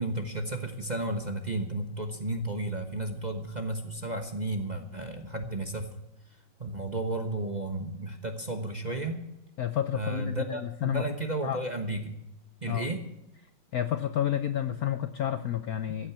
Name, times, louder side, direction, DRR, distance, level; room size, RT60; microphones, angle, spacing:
voice 1, 0.0-5.9 6.6-9.3 9.9-12.2 12.6-13.0, right 1 dB, 30° right, 5 dB, 1.0 m, -33 dB
voice 2, 9.6-11.0 11.4-11.6 12.7-12.9 13.7-16.1, left 10 dB, 65° left, 11 dB, 0.9 m, -30 dB
14.5 x 8.8 x 8.2 m, 0.87 s
omnidirectional pair, 2.2 m